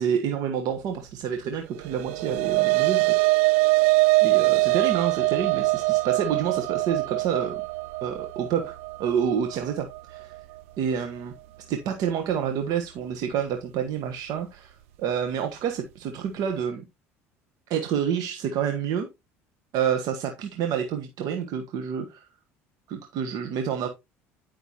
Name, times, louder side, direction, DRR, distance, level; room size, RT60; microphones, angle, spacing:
voice 1, 0.0-3.1 4.2-7.6 8.0-10.3 10.8-11.3 11.7-16.9 17.7-19.1 19.7-22.3 22.9-23.9, right 8 dB, 60° right, 1.4 m, -28 dB
sound 1, 1.8-10.4, right 24 dB, 80° right, 0.5 m, -23 dB
11.0 x 5.9 x 3.0 m
hypercardioid pair, 70°, 7 cm